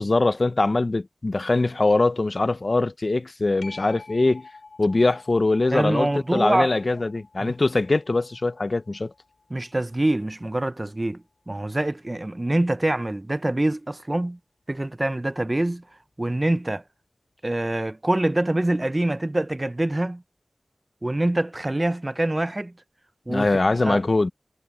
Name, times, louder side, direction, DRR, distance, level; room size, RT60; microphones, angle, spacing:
voice 1, 0.0-4.5 4.8-9.1 23.3-24.3, left 2 dB, 50° left, 0.7 m, -22 dB
sound 1, 3.6-10.8 16.3-16.4, left 3 dB, 80° left, 5.2 m, -49 dB
voice 2, 5.7-6.7 7.4-7.5 9.5-14.4 14.7-15.8 16.2-16.8 17.4-20.2 21.0-22.7 23.3-23.5 23.8-24.0, right 1 dB, 25° right, 0.5 m, -25 dB
wide cardioid pair, 70°, 0 cm